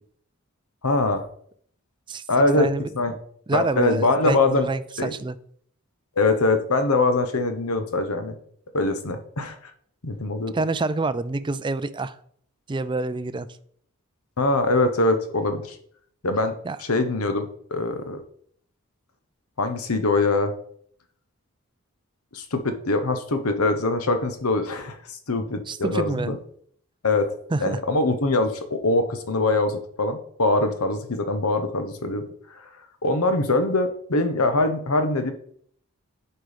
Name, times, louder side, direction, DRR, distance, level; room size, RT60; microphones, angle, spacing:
voice 1, 0.8-1.2 2.3-2.7 2.9-3.1 3.5-4.7 5.0-5.1 6.2-8.4 8.7-9.6 10.0-10.5 14.4-15.8 16.2-18.2 19.6-20.5 22.3-26.4 27.0-27.3 27.6-32.2 32.5-32.7 33.0-35.3, left 2 dB, 80° left, 8 dB, 1.1 m, -23 dB
voice 2, 2.6-2.9 3.5-5.4 10.5-12.2 12.7-13.5 16.6-16.8 25.7-26.4 27.5-27.8, right 3 dB, 20° right, 14 dB, 0.4 m, -27 dB
9.0 x 4.6 x 5.2 m, 0.62 s
head